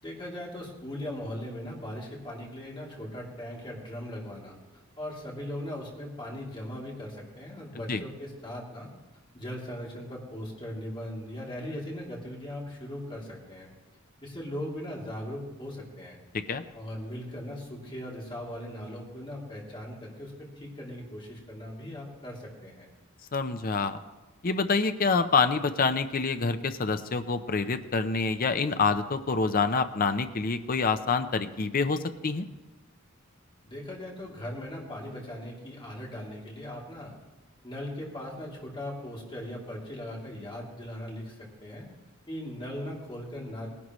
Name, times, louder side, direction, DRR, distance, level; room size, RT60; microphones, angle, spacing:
voice 1, 0.0-4.6 5.0-8.9 9.3-13.7 14.2-16.2 16.7-22.9 33.6-37.1 37.6-41.9 42.3-43.7, left 1 dB, 25° left, -3 dB, 3.0 m, -39 dB
voice 2, 23.3-24.0 24.4-32.5, left 4 dB, 45° left, 9 dB, 0.7 m, -27 dB
18.5 x 11.5 x 3.1 m, 1.2 s
head